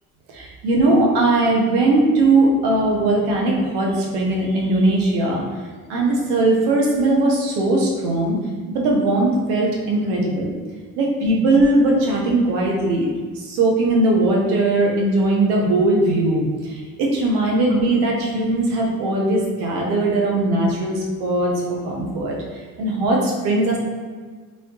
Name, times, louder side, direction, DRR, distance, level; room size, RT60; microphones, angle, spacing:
voice 1, 0.3-5.4 5.9-8.4 8.7-10.5 11.0-13.1 13.4-21.5 21.8-23.8, right 2 dB, 80° right, -2 dB, 0.8 m, -19 dB
3.1 x 3.0 x 2.8 m, 1.5 s
supercardioid pair, 60°, 40 cm